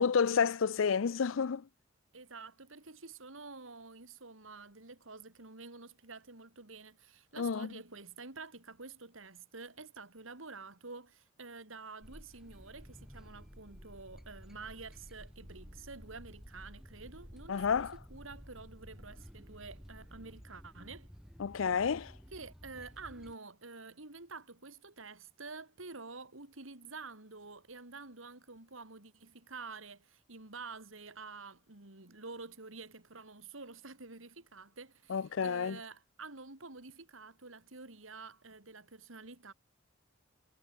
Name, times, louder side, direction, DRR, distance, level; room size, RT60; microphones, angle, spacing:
voice 1, 0.0-1.7 7.4-7.7 17.5-17.9 21.4-22.1 35.1-35.8, left 6 dB, 80° left, 0.5 m, -30 dB
voice 2, 2.1-17.8 18.1-21.1 22.3-39.5, right 3 dB, 80° right, 3.2 m, -49 dB
sound 1, 12.0-23.3, equal, 5° right, 2.8 m, -53 dB
head